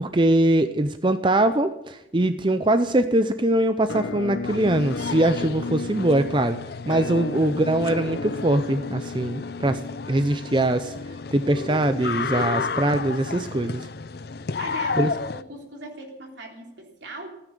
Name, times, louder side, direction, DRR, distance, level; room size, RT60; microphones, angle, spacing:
voice 1, 0.0-6.6 6.9-9.8 10.1-10.9 11.3-13.9 15.0-15.1, right 1 dB, 25° right, 10 dB, 0.6 m, -22 dB
Musical instrument, 3.9-13.7, left 3 dB, 80° left, 0.8 m, -34 dB
sound 1, 4.4-15.4, left 4 dB, 55° left, 0.5 m, -33 dB
voice 2, 7.0-7.4 14.6-17.4, right 2 dB, 70° right, 1 dB, 3.6 m, -40 dB
16.0 x 10.0 x 9.2 m, 0.91 s
head